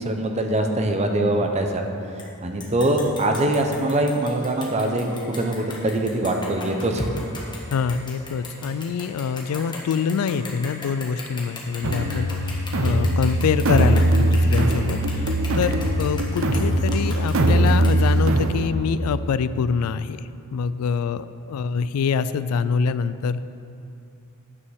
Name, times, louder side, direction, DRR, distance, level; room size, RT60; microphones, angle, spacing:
voice 1, 0.0-1.9 2.4-7.1, right 1 dB, 30° right, 4 dB, 0.7 m, -23 dB
sound 1, 2.2-2.3 2.6-18.4, left 3 dB, 20° left, 1.3 m, -38 dB
voice 2, 7.7-20.2 20.5-23.4, left 6 dB, 85° left, 15 dB, 0.3 m, -25 dB
sound 2, 11.8-18.7, right 1 dB, 65° right, 0.7 m, -21 dB
9.6 x 5.7 x 6.3 m, 2.6 s
head